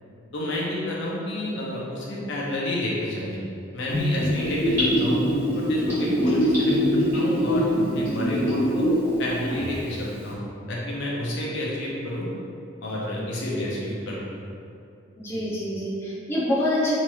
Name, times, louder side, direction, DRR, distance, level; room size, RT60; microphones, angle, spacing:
voice 1, 0.3-3.4 3.7-5.2 5.5-8.9 9.2-12.3 12.8-14.2 15.3-15.4, left 1 dB, 60° left, -4 dB, 0.5 m, -30 dB
Gurgling / Bathtub (filling or washing), 3.9-9.0 9.4-9.5, equal, 15° right, 1.2 m, -23 dB
voice 2, 6.0-6.3 9.5-9.6 15.2-16.9, left 1 dB, 10° left, -9 dB, 0.4 m, -27 dB
3.0 x 2.7 x 2.3 m, 2.4 s
head